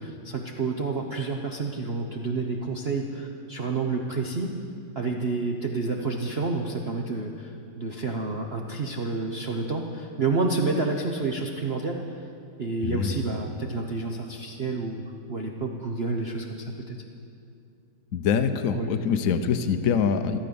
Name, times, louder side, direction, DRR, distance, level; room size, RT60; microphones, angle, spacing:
voice 1, 0.0-4.6 4.9-12.2 12.6-15.0 15.3-17.0 18.7-18.9, right 3 dB, 70° right, 1 dB, 0.5 m, -29 dB
voice 2, 12.8-13.2 18.1-20.4, left 6 dB, 75° left, 9 dB, 0.7 m, -24 dB
14.0 x 13.5 x 6.9 m, 2.4 s
omnidirectional pair, 2.4 m